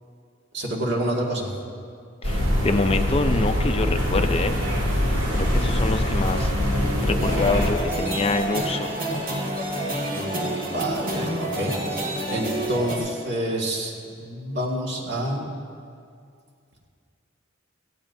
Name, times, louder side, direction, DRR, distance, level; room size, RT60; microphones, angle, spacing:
voice 1, 0.5-1.5 10.1-15.4, right 1 dB, 60° right, -2 dB, 2.0 m, -28 dB
voice 2, 2.2-4.5 5.3-6.5 7.0-9.0, left 3 dB, 30° left, 8 dB, 0.5 m, -25 dB
sound 1, 2.2-7.7, left 1 dB, 75° right, 2.6 m, -23 dB
sound 2, 7.2-13.0, right 1 dB, 45° right, 2.1 m, -29 dB
17.5 x 14.5 x 2.7 m, 2.3 s
head